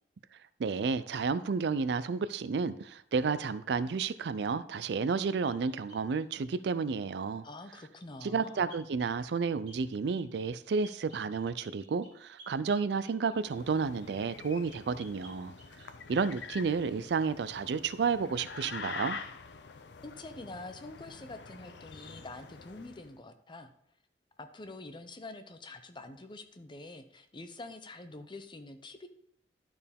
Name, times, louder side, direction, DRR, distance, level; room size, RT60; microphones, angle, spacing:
voice 1, 0.6-7.4 8.2-15.5 16.1-19.2, right 5 dB, 70° right, 15 dB, 0.4 m, -31 dB
sound 1, 4.7-6.6 8.7-9.2 9.7-9.8 10.1-10.5 10.8-14.1 14.7-15.9 16.2-16.5, right 2 dB, 90° right, 2.3 m, -56 dB
voice 2, 7.4-8.6 20.0-23.7 24.4-29.1, left 2 dB, 25° left, 8 dB, 0.7 m, -46 dB
sound 2, 13.4-23.1, left 5 dB, 75° left, 0.6 m, -46 dB
12.0 x 4.5 x 3.5 m, 0.72 s
head